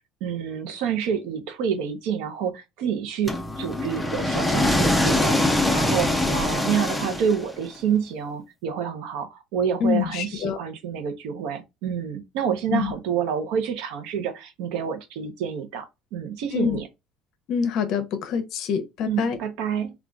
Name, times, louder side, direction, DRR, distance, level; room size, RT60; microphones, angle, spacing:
voice 1, 0.2-5.4 5.7-16.9 19.1-19.9, right 8 dB, 80° right, 0.7 m, -28 dB
sound 1, 3.3-7.7, left 1 dB, ahead, 0.4 m, -23 dB
voice 2, 9.8-10.6 12.7-12.9 16.5-16.8 17.5-19.4, left 7 dB, 55° left, 0.6 m, -25 dB
3.8 x 2.3 x 2.3 m
cardioid pair, 155°, 0 cm